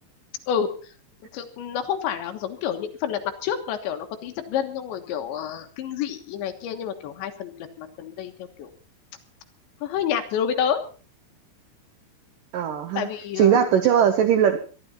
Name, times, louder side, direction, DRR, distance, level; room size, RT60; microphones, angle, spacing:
voice 1, 1.3-7.5 7.8-8.7 9.8-10.8 13.0-13.8, left 8 dB, 75° left, 6 dB, 3.6 m, -29 dB
voice 2, 12.5-13.1 13.4-14.6, right 9 dB, 85° right, 8 dB, 1.9 m, -19 dB
23.0 x 11.5 x 4.3 m, 0.38 s
omnidirectional pair, 5.6 m